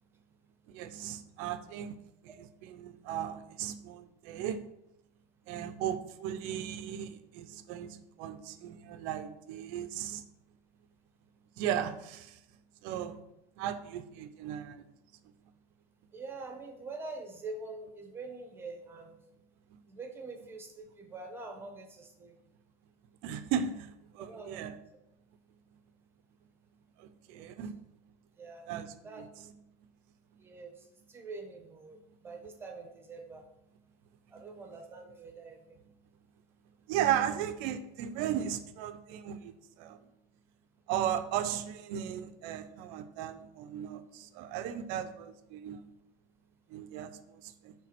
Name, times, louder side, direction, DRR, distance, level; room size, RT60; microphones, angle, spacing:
voice 1, 0.7-2.0 2.2-4.6 5.5-10.2 11.6-12.4 12.8-13.2 13.6-14.8 19.7-19.8 23.2-24.7 27.0-27.7 28.7-29.6 34.3-34.6 36.9-40.0 40.9-45.9 46.7-47.7, right 10 dB, 40° right, 11 dB, 0.7 m, -36 dB
voice 2, 16.1-19.2 19.9-22.4 24.2-24.7 27.3-27.5 28.4-28.7 29.0-29.2 30.4-33.4 34.3-35.8, right 3 dB, 10° right, 4 dB, 0.9 m, -45 dB
9.1 x 3.5 x 5.9 m, 0.84 s
supercardioid pair, 170°, 21 cm